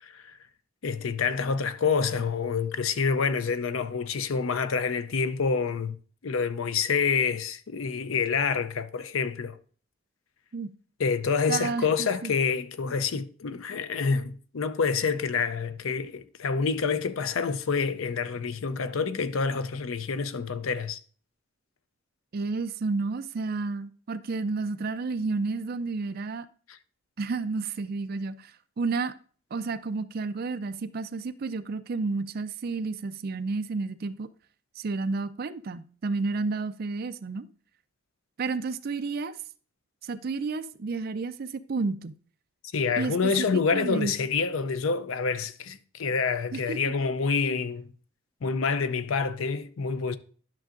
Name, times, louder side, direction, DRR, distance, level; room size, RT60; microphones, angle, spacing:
voice 1, 0.0-0.4 0.8-6.0 6.2-9.6 11.0-21.0 26.7-26.8 42.7-47.9 48.4-50.2, left 5 dB, 75° left, 0.5 m, -27 dB
voice 2, 11.5-12.3 22.3-26.5 27.2-29.1 29.5-34.3 34.8-37.5 38.4-39.4 40.0-42.1 43.0-44.1 46.5-46.9, right 4 dB, 45° right, 0.4 m, -31 dB
10.5 x 6.2 x 2.5 m
head